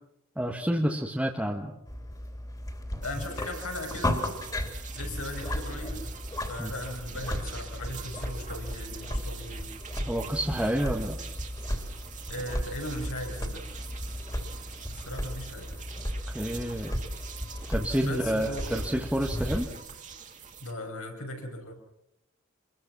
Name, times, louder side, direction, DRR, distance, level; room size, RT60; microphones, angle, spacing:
voice 1, 0.3-1.7 6.6-6.7 10.1-11.2 16.3-17.0 17.7-19.7, equal, 5° right, 0 dB, 1.5 m, -29 dB
sound 1, 1.9-19.7, left 1 dB, 20° left, 3.3 m, -35 dB
voice 2, 3.0-4.2 4.9-6.1 6.5-9.7 12.3-13.7 14.9-15.7 18.0-19.0 20.6-21.7, left 1 dB, 70° left, 2 dB, 5.8 m, -38 dB
sound 2, 3.0-20.7, right 6 dB, 35° right, 2.4 m, -45 dB
26.0 x 22.0 x 6.1 m, 0.81 s
head